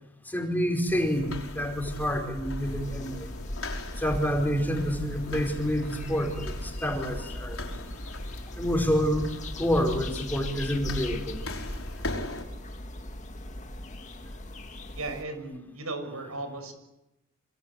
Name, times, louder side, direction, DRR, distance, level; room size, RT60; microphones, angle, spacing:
voice 1, 0.3-3.3 4.0-7.6 8.6-9.3 9.6-11.4, equal, 10° left, 3 dB, 4.9 m, -28 dB
sound 1, 0.9-12.4, left 1 dB, 75° left, 5.5 m, -38 dB
sound 2, 2.6-15.2, left 2 dB, 35° left, 2.2 m, -41 dB
voice 2, 14.9-16.7, right 2 dB, 85° right, 8 dB, 6.7 m, -36 dB
27.0 x 25.5 x 8.3 m, 0.90 s
head